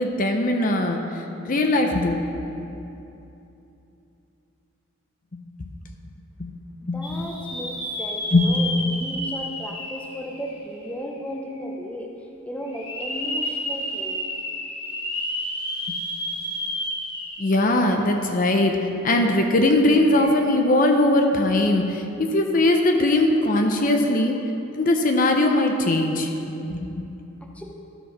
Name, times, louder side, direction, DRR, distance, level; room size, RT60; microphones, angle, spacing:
voice 1, 0.0-2.4 5.3-5.7 6.4-6.6 6.9-7.3 8.3-8.6 15.9-16.0 17.4-24.3 24.7-26.3 26.7-27.1, left 1 dB, 45° left, 3 dB, 0.6 m, -21 dB
voice 2, 6.8-12.1 12.5-14.3 27.5-27.6, equal, 5° left, 0 dB, 0.7 m, -35 dB
sound 1, 7.0-11.0 11.5-11.6 12.7-17.6 18.0-18.1 20.0-20.2, left 1 dB, 25° left, 1.6 m, -31 dB
13.0 x 4.6 x 6.0 m, 2.9 s
head